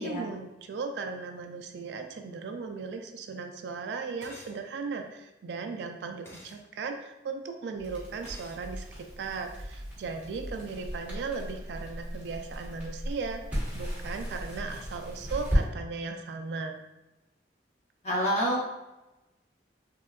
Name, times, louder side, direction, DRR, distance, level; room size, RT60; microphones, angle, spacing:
voice 1, 0.0-16.8, right 4 dB, 70° right, 5 dB, 0.3 m, -37 dB
sound 1, 4.2-4.6 6.2-6.6 8.2-8.6, left 1 dB, 15° left, 0.3 m, -49 dB
Crackle, 7.8-15.6, equal, 10° right, 1.1 m, -35 dB
voice 2, 18.0-18.7, equal, 40° left, -5 dB, 0.9 m, -27 dB
3.5 x 2.2 x 2.3 m, 0.99 s
head